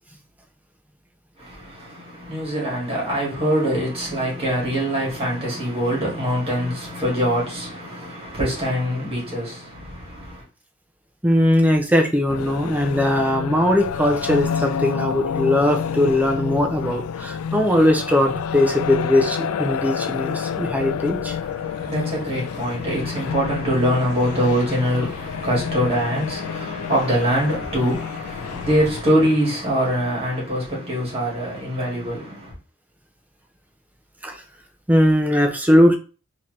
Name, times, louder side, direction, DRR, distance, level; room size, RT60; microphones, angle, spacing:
voice 1, 1.4-10.4 21.4-32.5, equal, 25° right, 2.0 m, -24 dB
voice 2, 11.2-21.4 34.2-34.4 34.9-36.0, left 1 dB, 5° right, 0.5 m, -19 dB
sound 1, 12.3-29.0, left 7 dB, 80° left, 0.3 m, -29 dB
3.7 x 2.9 x 3.1 m
head